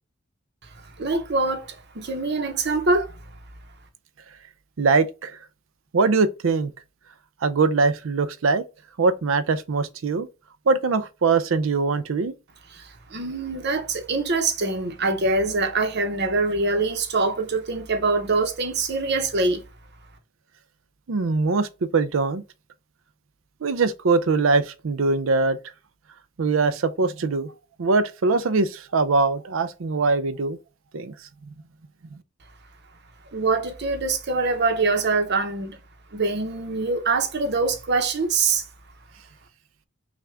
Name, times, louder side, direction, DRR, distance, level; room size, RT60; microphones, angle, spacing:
voice 1, 0.8-3.2 12.7-19.6 33.3-35.8 36.1-38.6, right 3 dB, 55° right, 1.0 m, -24 dB
voice 2, 4.8-5.4 5.9-6.7 7.4-8.6 9.0-10.3 10.7-12.3 21.1-22.4 23.6-25.6 26.4-27.5 27.8-30.6 30.9-31.1, right 4 dB, 75° right, 0.5 m, -22 dB
5.8 x 2.5 x 3.4 m
head